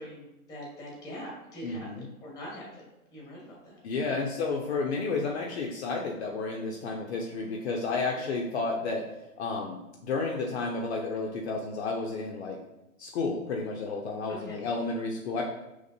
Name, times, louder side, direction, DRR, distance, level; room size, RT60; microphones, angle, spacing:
voice 1, 0.0-4.3 8.2-8.3 14.3-14.6, equal, 10° left, -3 dB, 1.3 m, -44 dB
voice 2, 1.6-2.1 3.8-9.0 9.4-12.6 13.0-15.4, left 3 dB, 50° left, -1 dB, 0.6 m, -31 dB
5.0 x 3.2 x 2.7 m, 0.93 s
hypercardioid pair, 140°, 43 cm